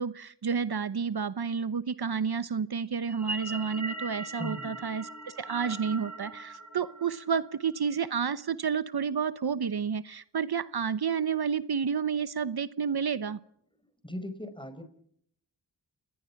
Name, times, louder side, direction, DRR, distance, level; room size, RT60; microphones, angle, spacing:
voice 1, 0.0-13.4, right 6 dB, 60° right, 15 dB, 1.0 m, -30 dB
sound 1, 3.1-7.6, right 2 dB, 40° right, 4.9 m, -40 dB
voice 2, 4.4-4.8 14.0-14.8, equal, 10° left, 12 dB, 4.8 m, -38 dB
27.5 x 20.0 x 5.9 m, 0.67 s
cardioid pair, 40°, 42 cm